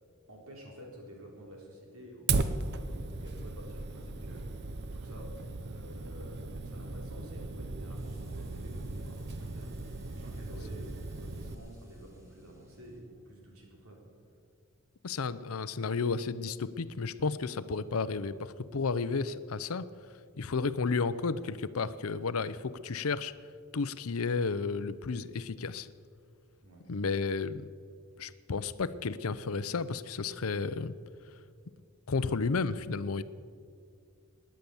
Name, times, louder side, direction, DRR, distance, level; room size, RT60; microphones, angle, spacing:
voice 1, 0.3-4.5 4.9-5.3 5.6-14.0 26.6-26.9, equal, 75° right, -1 dB, 4.1 m, -50 dB
Fire, 2.3-11.5, right 3 dB, 50° right, 0.8 m, -37 dB
sound 1, 7.9-13.0, equal, 15° right, 2.6 m, -57 dB
voice 2, 15.0-19.9 20.4-23.3 23.7-25.9 26.9-27.7 28.2-30.9 32.1-33.2, left 4 dB, 75° left, 15 dB, 0.6 m, -32 dB
17.0 x 10.5 x 7.1 m, 2.2 s
head